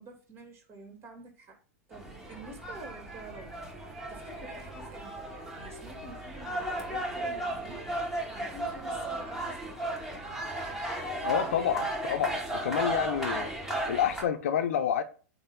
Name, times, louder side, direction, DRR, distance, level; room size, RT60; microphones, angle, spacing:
voice 1, 0.0-1.6 1.9-10.4, right 2 dB, 30° right, 3.2 m, -49 dB
sound 1, 1.9-14.2, right 1 dB, 5° right, 2.2 m, -35 dB
voice 2, 11.2-13.5 13.9-15.0, left 9 dB, 60° left, 0.9 m, -29 dB
8.7 x 3.0 x 5.9 m
figure-of-eight pair, 95°, 8 cm